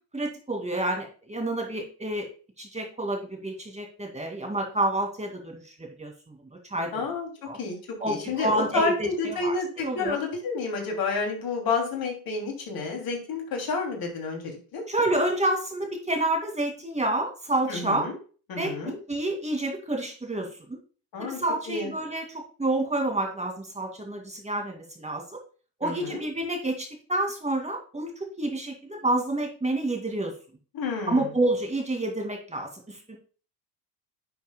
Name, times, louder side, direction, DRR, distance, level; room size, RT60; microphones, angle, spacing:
voice 1, 0.1-2.3 2.6-6.4 6.7-7.0 7.4-7.6 8.0-10.2 14.9-18.1 18.6-18.7 19.1-20.8 21.2-22.2 22.6-25.4 25.8-30.3 31.1-33.2, right 1 dB, 15° right, 2 dB, 2.3 m, -29 dB
voice 2, 6.9-7.3 7.6-7.8 8.0-14.8 17.7-18.1 18.5-19.0 21.1-21.4 21.7-21.9 25.8-26.2 30.7-31.3, left 4 dB, 45° left, 2 dB, 2.9 m, -30 dB
10.5 x 6.5 x 2.3 m, 0.38 s
hypercardioid pair, 80°, 49 cm